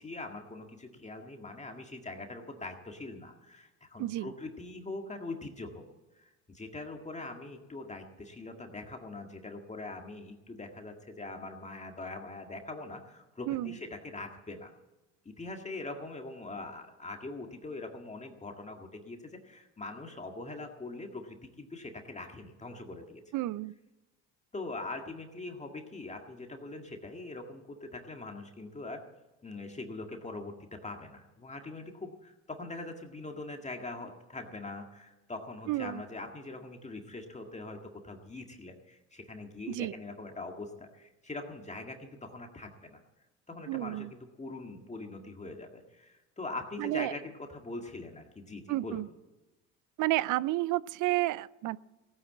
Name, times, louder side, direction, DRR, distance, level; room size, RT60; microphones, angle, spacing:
voice 1, 0.0-5.9 6.2-14.7 15.3-23.2 24.5-29.0 29.4-43.0 43.5-49.0, left 2 dB, 15° left, 3 dB, 1.9 m, -42 dB
voice 2, 4.0-4.3 13.5-13.8 23.3-23.7 35.7-36.0 39.7-39.9 43.7-44.1 46.8-47.1 48.7-49.1 50.0-51.8, right 17 dB, 50° right, 21 dB, 0.6 m, -31 dB
16.5 x 9.8 x 7.6 m, 1.1 s
supercardioid pair, 85°, 39 cm